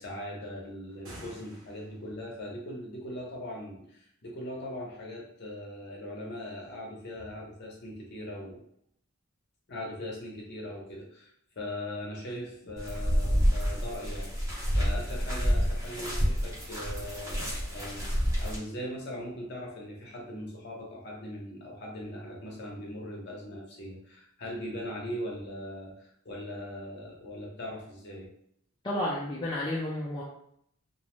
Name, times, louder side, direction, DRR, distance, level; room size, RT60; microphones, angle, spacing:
voice 1, 0.0-8.6 9.7-11.3 11.6-28.3, left 1 dB, 50° left, -2 dB, 0.7 m, -40 dB
sound 1, 0.9-2.2, equal, 65° right, 0.7 m, -49 dB
sound 2, 12.8-18.6, equal, 15° right, 0.8 m, -28 dB
voice 2, 28.8-30.2, left 1 dB, 20° left, -6 dB, 0.3 m, -31 dB
2.5 x 2.0 x 3.0 m, 0.71 s
head